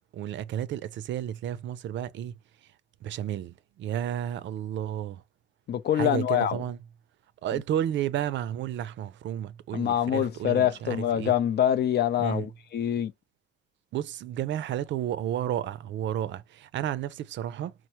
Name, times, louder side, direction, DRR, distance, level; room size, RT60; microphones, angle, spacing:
voice 1, 0.1-2.4 3.0-5.2 5.9-6.8 7.4-11.3 12.2-12.5 13.9-17.7, right 11 dB, 65° right, 0.4 m, -32 dB
voice 2, 5.7-6.6 7.5-7.6 9.7-13.1, left 10 dB, 55° left, 0.5 m, -25 dB
4.3 x 2.0 x 2.8 m
cardioid pair, 90°, 20 cm